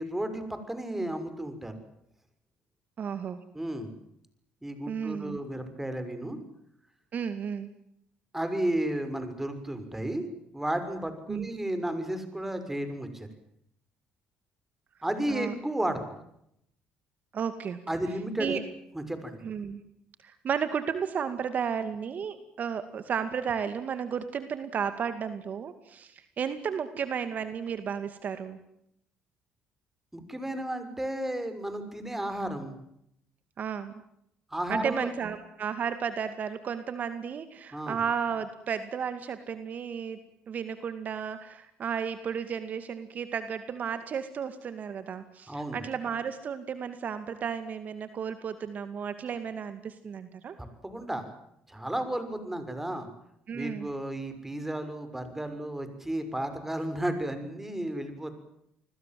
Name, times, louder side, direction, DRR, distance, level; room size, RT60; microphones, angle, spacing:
voice 1, 0.0-1.7 3.5-3.9 4.6-6.4 8.3-10.2 10.5-13.3 15.0-16.0 17.9-18.6 18.9-19.4 30.1-32.8 34.5-35.1 37.7-38.0 45.5-45.8 50.6-51.3 51.7-53.1 53.5-58.3, right 1 dB, 10° right, 9 dB, 6.3 m, -33 dB
voice 2, 3.0-3.4 4.9-5.4 7.1-7.7 11.3-11.5 15.3-15.5 17.3-17.8 18.4-18.6 19.4-19.8 20.2-28.6 33.6-33.9 34.7-40.2 40.5-50.6 53.5-53.9, right 7 dB, 50° right, 10 dB, 2.3 m, -33 dB
29.5 x 21.0 x 7.8 m, 0.76 s
supercardioid pair, 80°, 3 cm